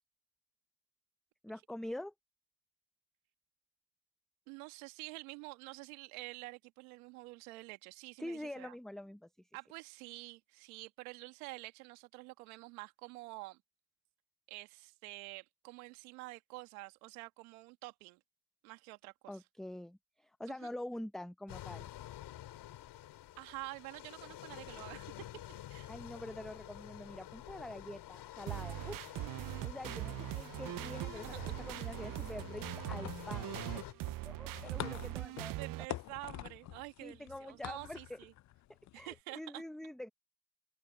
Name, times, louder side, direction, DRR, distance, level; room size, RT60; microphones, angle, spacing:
voice 1, 1.4-2.1 8.2-9.3 19.3-21.9 25.9-29.0 29.6-33.8 34.2-35.6 37.0-38.2 38.9-40.1, left 1 dB, ahead, 0.6 m, -45 dB
voice 2, 4.5-8.7 9.5-13.6 14.5-18.2 18.6-19.3 20.5-20.7 23.4-25.1 25.5-25.9 31.4-31.7 35.6-38.3 38.9-39.6, right 24 dB, 90° right, 2.1 m, -48 dB
sound 1, 21.5-33.9, left 13 dB, 70° left, 3.2 m, -49 dB
sound 2, 28.5-35.9, right 18 dB, 55° right, 0.5 m, -41 dB
sound 3, 31.9-39.2, left 15 dB, 45° left, 0.4 m, -48 dB
open air
supercardioid pair, 60°, 42 cm